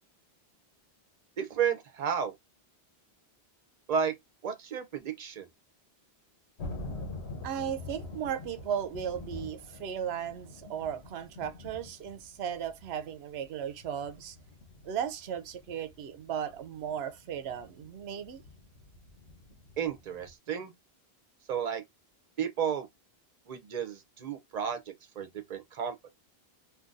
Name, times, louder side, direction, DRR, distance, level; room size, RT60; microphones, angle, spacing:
voice 1, 1.4-2.3 3.9-4.1 4.4-5.5 19.8-20.7 21.5-21.8 22.4-22.9 23.5-26.0, right 7 dB, 45° right, 0.7 m, -32 dB
sound 1, 6.6-20.3, left 2 dB, 90° left, 1.2 m, -46 dB
voice 2, 7.4-14.4 14.8-18.4, right 8 dB, 80° right, 0.8 m, -36 dB
3.8 x 2.6 x 2.5 m
omnidirectional pair, 1.1 m